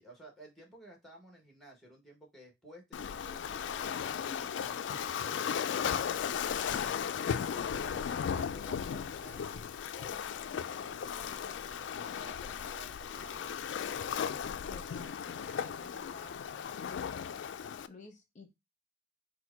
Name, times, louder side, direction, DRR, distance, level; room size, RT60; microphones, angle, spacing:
voice 1, 0.0-3.9 4.2-6.9 7.4-9.6 9.9-10.2 10.7-13.5, right 1 dB, ahead, 2 dB, 1.1 m, -55 dB
Waves surf, 2.9-17.9, left 7 dB, 70° left, 0.3 m, -36 dB
sound 1, 7.3-16.5, left 1 dB, 20° right, 1.9 m, -61 dB
voice 2, 14.7-17.4 17.9-18.5, left 3 dB, 40° left, 3 dB, 0.8 m, -54 dB
4.3 x 2.2 x 4.5 m, 0.22 s
head